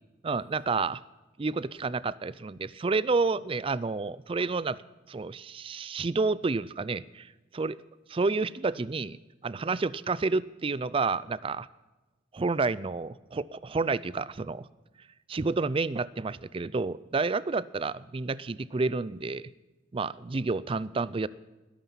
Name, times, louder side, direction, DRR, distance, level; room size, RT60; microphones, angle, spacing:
voice 1, 0.2-1.0 1.4-4.8 5.1-7.3 7.5-7.8 8.1-9.2 9.4-11.7 12.3-14.7 15.3-19.5 19.9-21.3, right 3 dB, 25° right, 19 dB, 0.4 m, -29 dB
19.5 x 11.0 x 5.8 m, 1.2 s
head